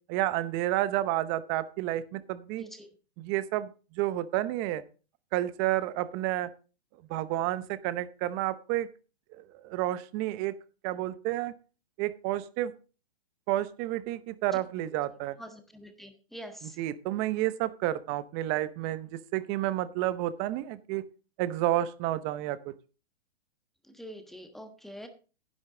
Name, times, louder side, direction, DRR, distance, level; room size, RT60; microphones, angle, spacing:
voice 1, 0.1-2.6 3.2-4.8 5.3-6.5 7.1-8.9 9.3-10.6 10.8-11.5 12.0-12.7 13.5-15.4 16.6-21.0 21.4-22.7, right 14 dB, 30° right, 15 dB, 0.8 m, -30 dB
voice 2, 2.6-2.9 15.4-16.8 23.9-25.1, equal, ahead, 6 dB, 1.3 m, -45 dB
10.5 x 10.5 x 3.9 m, 0.35 s
hypercardioid pair, 140°, 32 cm